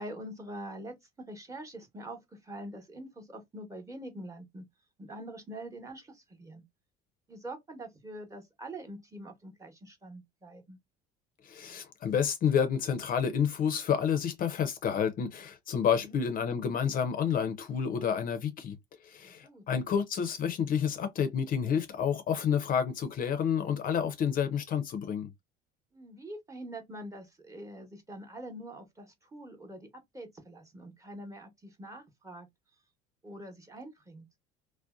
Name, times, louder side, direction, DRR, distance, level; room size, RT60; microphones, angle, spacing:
voice 1, 0.0-4.6 5.0-6.6 7.3-10.8 16.0-16.2 19.2-19.6 25.9-32.5 33.2-34.3, right 1 dB, 15° right, 0.9 m, -44 dB
voice 2, 11.4-18.8 19.0-25.3, left 7 dB, 45° left, 0.5 m, -29 dB
2.5 x 2.1 x 2.3 m
supercardioid pair, 80°, 20 cm